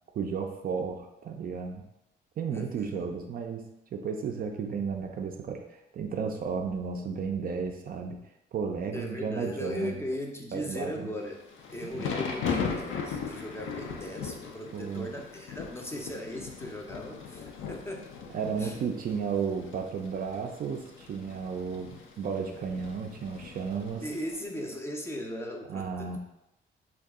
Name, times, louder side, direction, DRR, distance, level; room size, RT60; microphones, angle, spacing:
voice 1, 0.1-1.9 2.4-8.2 8.5-10.1 10.5-11.1 11.8-12.1 14.7-15.1 18.3-24.1 25.7-26.2, right 6 dB, 50° right, 3 dB, 0.4 m, -33 dB
voice 2, 2.5-3.1 8.9-11.4 11.7-18.1 18.6-18.8 24.0-26.2, left 1 dB, 15° left, 1 dB, 0.5 m, -38 dB
Thunder / Rain, 11.3-24.3, left 5 dB, 80° left, 0.5 m, -38 dB
2.6 x 2.3 x 3.5 m, 0.89 s
cardioid pair, 90°, 20 cm